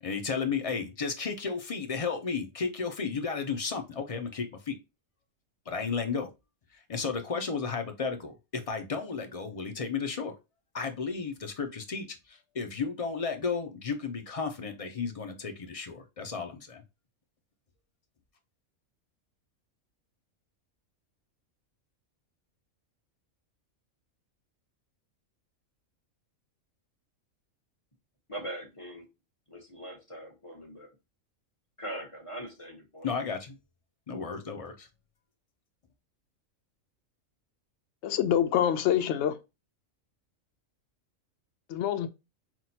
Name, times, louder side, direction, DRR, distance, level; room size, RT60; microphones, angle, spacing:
voice 1, 0.0-4.8 5.7-6.3 6.9-10.3 10.7-16.8 33.0-33.6 34.1-34.9, left 5 dB, 40° left, 0.5 m, -33 dB
voice 2, 28.3-29.1 29.5-30.9 31.8-33.1, right 1 dB, 25° left, 1.3 m, -41 dB
voice 3, 38.0-39.4 41.7-42.1, left 10 dB, 65° left, 0.8 m, -26 dB
5.9 x 2.4 x 2.8 m
omnidirectional pair, 1.4 m